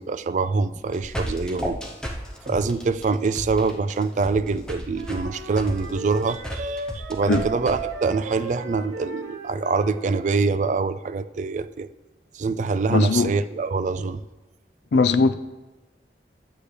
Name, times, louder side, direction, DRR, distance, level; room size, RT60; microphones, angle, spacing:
voice 1, 0.0-1.8 2.5-11.9 12.3-14.2, right 4 dB, 45° right, 0.3 m, -25 dB
sound 1, 0.7-7.8, equal, 5° left, 0.8 m, -33 dB
Wind instrument woodwind instrument, 4.9-10.3, right 3 dB, 75° right, 1.1 m, -35 dB
voice 2, 12.9-13.3 14.9-15.3, left 4 dB, 75° left, 0.4 m, -19 dB
11.5 x 8.1 x 3.3 m
head